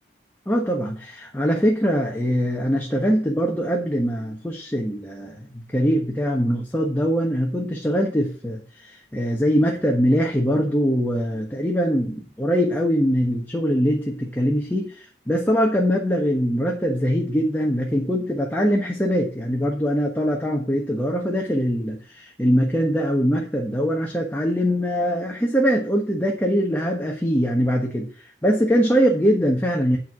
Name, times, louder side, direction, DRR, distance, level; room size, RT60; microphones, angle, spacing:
voice 1, 0.5-30.0, equal, 10° left, 0 dB, 1.2 m, -22 dB
9.1 x 4.7 x 7.4 m, 0.42 s
head